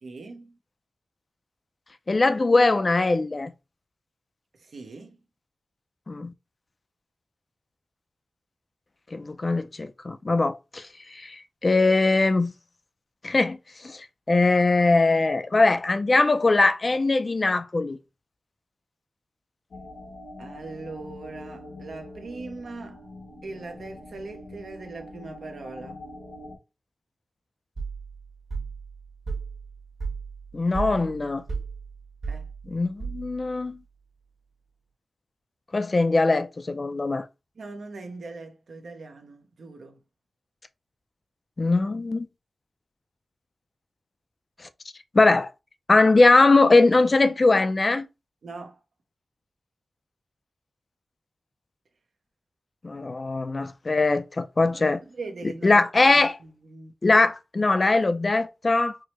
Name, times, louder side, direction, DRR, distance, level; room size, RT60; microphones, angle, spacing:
voice 1, 0.0-0.6 4.6-5.2 20.4-23.0 23.4-26.0 32.3-32.5 37.6-40.0 48.4-48.8 54.7-55.8 56.1-56.9, right 3 dB, 80° right, 0.7 m, -40 dB
voice 2, 2.1-3.5 6.1-6.3 9.1-12.5 13.2-18.0 30.5-31.4 32.7-33.8 35.7-37.3 41.6-42.3 44.6-44.7 45.1-45.5 45.9-48.1 52.8-55.0 55.6-56.4 57.0-59.0, left 3 dB, 40° left, 0.3 m, -21 dB
sound 1, 19.7-26.6, left 1 dB, 80° left, 1.0 m, -44 dB
sound 2, 27.8-33.6, right 5 dB, 60° right, 1.4 m, -35 dB
4.6 x 2.1 x 2.9 m
wide cardioid pair, 80°, 0 cm